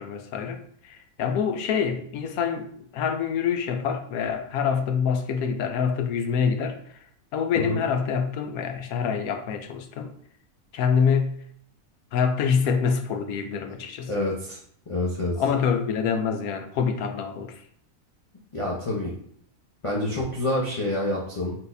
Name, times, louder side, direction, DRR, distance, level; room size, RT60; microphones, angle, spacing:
voice 1, 0.0-6.8 7.3-10.1 10.7-11.3 12.1-14.1 15.4-17.5, left 6 dB, 90° left, 1.1 m, -26 dB
voice 2, 14.1-14.6 14.9-15.4 18.5-19.1 19.8-21.6, left 1 dB, 30° left, 0.6 m, -27 dB
4.1 x 4.0 x 2.6 m
omnidirectional pair, 1.5 m